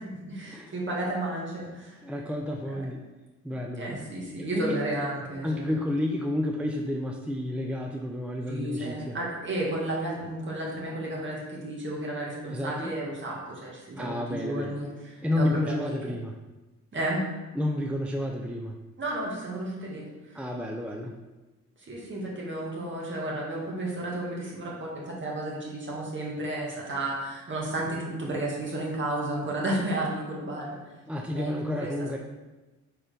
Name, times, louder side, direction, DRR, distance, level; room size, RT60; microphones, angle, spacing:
voice 1, 0.1-2.0 2.6-2.9 3.5-5.6 8.5-16.0 16.9-17.2 19.0-20.3 21.8-30.9 31.3-31.9, right 1 dB, 40° right, -4 dB, 2.1 m, -32 dB
voice 2, 2.0-3.0 3.4-4.0 4.5-4.8 5.4-9.2 12.4-12.9 14.0-14.7 15.2-16.3 17.5-18.8 20.3-21.2 31.1-32.2, left 1 dB, 5° right, 1 dB, 0.4 m, -30 dB
4.5 x 4.2 x 5.1 m, 1.1 s
cardioid pair, 90°, 30 cm